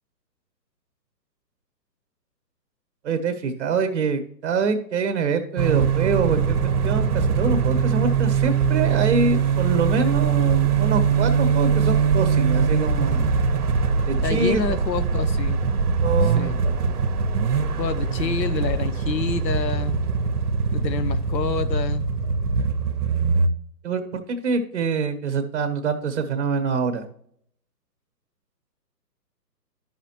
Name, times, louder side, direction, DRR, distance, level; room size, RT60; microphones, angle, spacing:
voice 1, 3.0-6.6 6.8-13.3 14.1-14.8 15.7-16.9 23.8-27.1, right 4 dB, 45° right, 1.3 m, -25 dB
sound 1, 5.6-23.5, right 6 dB, 65° right, 1.0 m, -22 dB
voice 2, 14.2-15.6 16.2-16.6 17.8-20.1 20.7-22.1, left 5 dB, 90° left, 0.9 m, -28 dB
12.5 x 5.9 x 3.0 m
hypercardioid pair, 155°, 49 cm